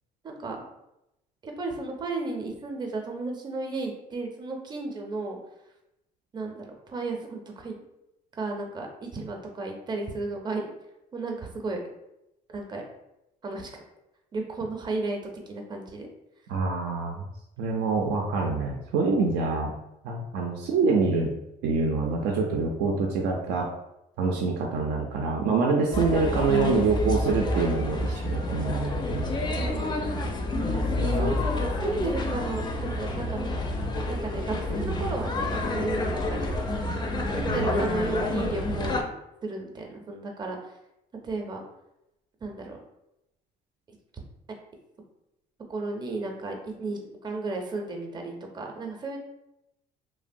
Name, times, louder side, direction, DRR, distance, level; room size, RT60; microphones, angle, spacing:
voice 1, 0.2-0.6 1.4-5.4 6.3-7.8 8.3-8.9 9.1-10.7 11.1-11.8 12.5-12.8 13.4-13.7 14.3-15.2 15.5-16.1 29.5-30.0 31.0-33.5 34.1-36.7 37.3-39.0 39.4-40.7 41.2-41.6 42.4-42.8 44.1-44.2 45.7-49.2, right 3 dB, 25° right, 2 dB, 0.5 m, -33 dB
voice 2, 16.5-17.3 17.6-19.7 20.0-21.3 21.6-23.7 24.2-29.3 30.6-31.4 37.4-37.7, right 4 dB, 80° right, 0 dB, 0.4 m, -26 dB
sound 1, 25.9-39.0, left 2 dB, 25° left, 0.4 m, -29 dB
2.8 x 2.1 x 2.5 m, 0.87 s
cardioid pair, 110°, 17 cm